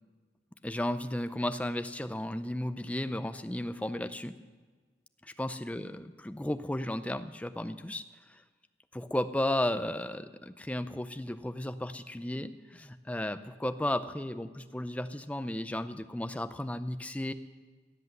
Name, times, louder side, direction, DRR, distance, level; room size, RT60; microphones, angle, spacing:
voice 1, 0.6-4.3 5.2-8.0 8.9-17.3, left 1 dB, 10° left, 11 dB, 0.5 m, -34 dB
16.5 x 8.1 x 7.7 m, 1.4 s
head